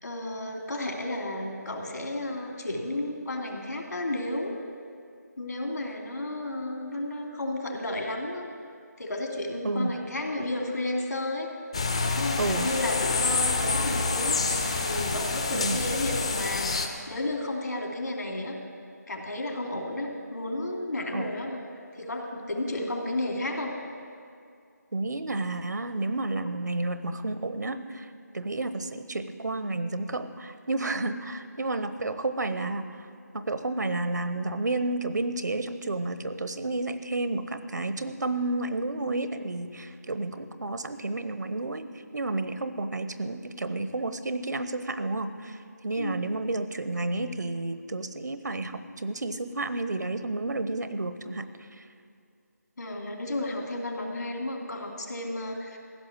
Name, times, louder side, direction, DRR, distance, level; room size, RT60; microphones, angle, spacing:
voice 1, 0.0-4.6 5.4-8.5 9.0-11.5 12.1-18.6 19.1-21.6 22.0-23.8 46.0-46.2 52.8-55.8, left 1 dB, 75° left, 1 dB, 3.0 m, -32 dB
sound 1, 11.7-16.9, left 3 dB, 20° left, 0.5 m, -27 dB
voice 2, 15.5-15.8 21.1-21.3 24.9-28.1 28.3-33.1 33.3-41.8 42.1-45.6 45.8-51.5 51.8-51.9, right 2 dB, 75° right, 11 dB, 1.0 m, -31 dB
15.5 x 6.7 x 9.6 m, 2.4 s
figure-of-eight pair, 175°, 10 cm